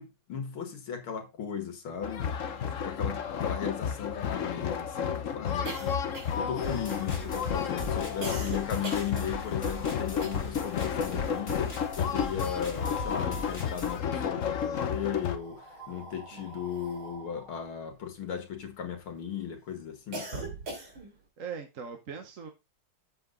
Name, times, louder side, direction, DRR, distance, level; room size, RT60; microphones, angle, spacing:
voice 1, 0.0-2.3 2.8-6.0 6.3-20.5, left 8 dB, 85° left, 2.6 m, -36 dB
sound 1, 2.0-15.4, left 7 dB, 55° left, 0.9 m, -32 dB
voice 2, 2.5-2.8 3.3-3.4 16.3-16.6 21.4-22.5, right 6 dB, 45° right, 1.4 m, -42 dB
sound 2, 4.8-10.8 11.0-12.6 12.9-13.9 14.6-19.1 19.5-21.3, right 2 dB, 80° right, 3.8 m, -43 dB
sound 3, 6.6-14.0, left 2 dB, 30° left, 1.9 m, -40 dB
7.9 x 7.5 x 3.9 m
omnidirectional pair, 2.3 m